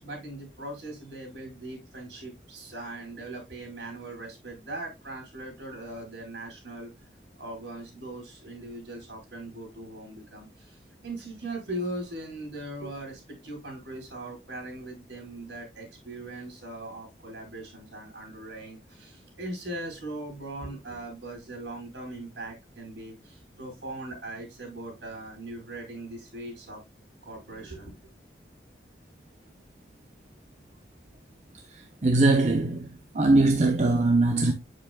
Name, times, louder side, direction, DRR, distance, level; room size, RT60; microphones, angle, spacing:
voice 1, 0.0-6.9 7.4-26.8 27.2-27.9, right 1 dB, 80° right, 4.8 m, -40 dB
voice 2, 32.0-32.9 33.1-34.5, right 2 dB, 40° right, 0.8 m, -21 dB
8.3 x 6.9 x 2.2 m
head